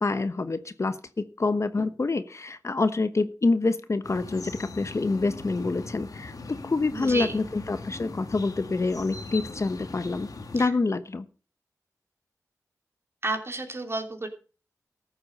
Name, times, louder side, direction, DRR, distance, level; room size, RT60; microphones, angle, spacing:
voice 1, 0.0-10.3 10.5-11.2, left 3 dB, 50° left, 12 dB, 1.1 m, -27 dB
sound 1, 4.0-10.6, left 3 dB, 70° left, 2.0 m, -40 dB
voice 2, 6.9-7.4 10.6-10.7 13.2-14.3, right 2 dB, 40° right, 5 dB, 3.2 m, -31 dB
14.0 x 7.9 x 5.5 m, 0.36 s
wide cardioid pair, 65°, 6 cm